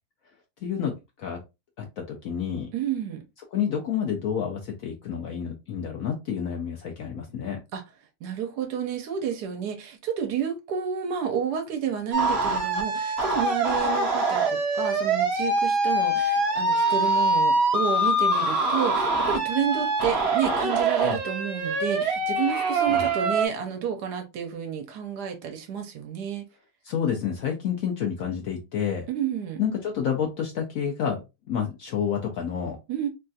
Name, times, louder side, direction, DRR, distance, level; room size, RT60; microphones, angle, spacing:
voice 1, 0.6-1.4 1.8-2.7 3.5-7.6 21.0-21.2 22.9-23.1 26.8-29.1 29.6-32.8, left 8 dB, 70° left, 0.9 m, -29 dB
voice 2, 2.7-3.2 7.7-7.8 8.2-26.4 29.1-29.6 32.9-33.1, right 8 dB, 80° right, 1.2 m, -30 dB
sound 1, 12.1-23.5, right 2 dB, 55° right, 0.8 m, -24 dB
3.3 x 2.3 x 2.6 m
omnidirectional pair, 1.8 m